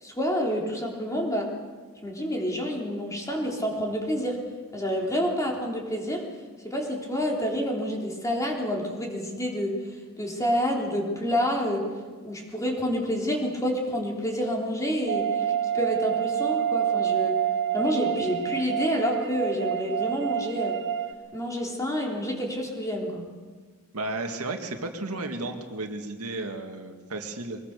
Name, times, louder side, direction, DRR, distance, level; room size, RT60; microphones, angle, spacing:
voice 1, 0.0-1.5 2.0-4.4 4.7-6.3 6.6-9.8 10.2-11.9 12.2-15.5 15.7-17.4 17.7-20.8 21.3-23.2, equal, 15° left, 0 dB, 3.5 m, -28 dB
sound 1, 15.1-21.1, right 10 dB, 55° right, 1.1 m, -27 dB
voice 2, 23.9-27.6, right 2 dB, 85° right, 5 dB, 2.1 m, -33 dB
22.5 x 20.5 x 6.7 m, 1.4 s
head